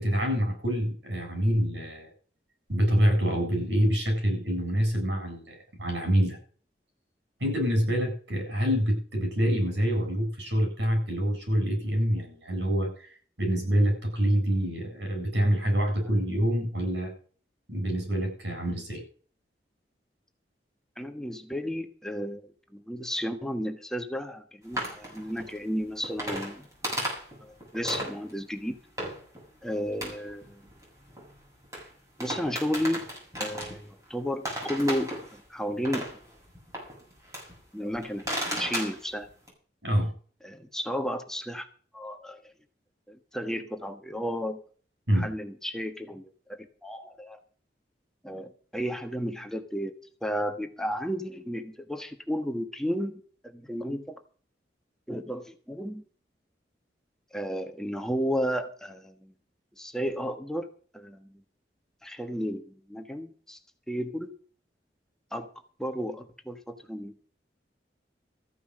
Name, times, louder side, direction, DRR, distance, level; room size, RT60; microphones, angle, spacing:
voice 1, 0.0-2.1 2.7-6.4 7.4-13.1 13.4-17.1 17.7-19.0 39.8-40.1 45.1-45.3, equal, 90° right, 4 dB, 7.9 m, -26 dB
voice 2, 21.0-26.7 27.4-28.8 29.6-30.7 32.2-33.0 33.4-36.0 37.7-38.2 38.5-39.3 40.4-41.7 41.9-42.4 43.1-44.6 45.1-46.3 46.8-47.4 48.2-49.9 50.2-54.2 55.1-56.0 57.3-59.3 59.8-60.7 60.9-61.4 62.0-63.6 63.9-64.3 65.3-65.5 65.8-67.1, equal, 5° left, 6 dB, 1.3 m, -33 dB
sound 1, 24.7-28.3 29.0-29.4 29.7-31.9 32.2-34.1 34.4-37.6 37.9-39.5, equal, 20° right, 7.2 m, -35 dB
14.5 x 9.6 x 6.4 m, 0.43 s
head